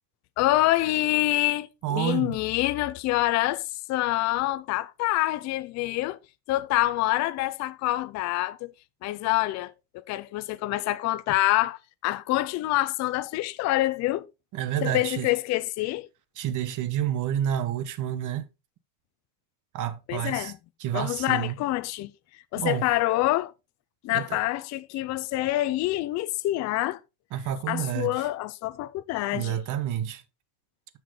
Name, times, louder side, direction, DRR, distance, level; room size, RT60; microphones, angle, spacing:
voice 1, 0.4-3.6 3.9-6.2 6.5-8.7 9.0-9.7 10.1-14.3 14.8-16.1 20.1-20.6 20.9-22.1 22.5-23.5 24.0-27.0 27.7-29.6, left 16 dB, 35° left, 0.5 m, -26 dB
voice 2, 1.8-2.4 14.5-15.3 16.4-18.5 19.7-20.5 20.8-21.6 22.6-22.8 24.1-24.4 27.3-28.1 29.3-30.2, right 10 dB, 40° right, 1.2 m, -29 dB
10.0 x 6.1 x 3.8 m
cardioid pair, 150°, 49 cm